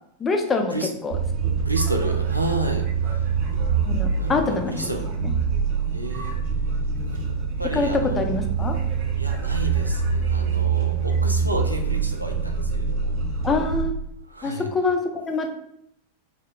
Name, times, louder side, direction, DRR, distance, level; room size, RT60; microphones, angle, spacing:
voice 1, 0.2-0.7 1.0-1.1 3.9-4.7 5.2-5.3 7.7-8.8 13.4-13.9 14.4-15.5, left 3 dB, 20° left, 4 dB, 0.4 m, -24 dB
sound 1, 1.1-13.8, right 6 dB, 45° right, 0.8 m, -25 dB
voice 2, 1.6-3.2 3.9-5.1 5.9-6.4 7.1-7.2 7.6-8.4 9.2-13.1 14.3-14.7, right 1 dB, 85° right, 3 dB, 0.3 m, -31 dB
2.1 x 2.1 x 3.6 m, 0.73 s
figure-of-eight pair, 90°, 0 cm